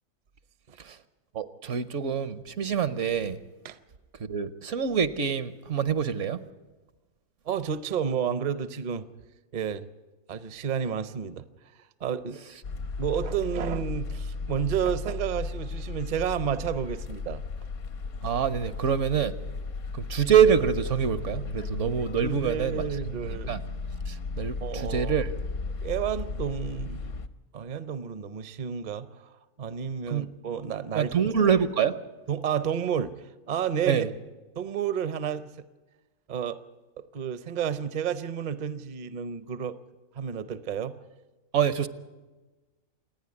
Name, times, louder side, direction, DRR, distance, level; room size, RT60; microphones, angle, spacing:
voice 1, 1.3-3.4 4.2-6.4 18.2-19.4 19.9-23.6 24.1-25.3 30.1-30.3 30.9-31.9 33.9-34.1 41.5-41.9, right 7 dB, 65° right, 14 dB, 1.1 m, -26 dB
voice 2, 7.5-9.1 9.5-9.9 10.3-11.5 12.0-12.4 13.0-17.4 18.2-18.3 22.2-23.5 24.6-25.1 25.8-27.2 27.5-29.3 29.6-31.1 32.3-33.1 33.5-34.0 34.6-35.4 36.3-36.6 37.0-39.8 40.2-41.0, right 8 dB, 40° right, 14 dB, 0.6 m, -31 dB
sound 1, 12.6-27.3, left 4 dB, 65° left, 1.2 m, -35 dB
27.5 x 9.9 x 9.8 m, 1.2 s
omnidirectional pair, 1.4 m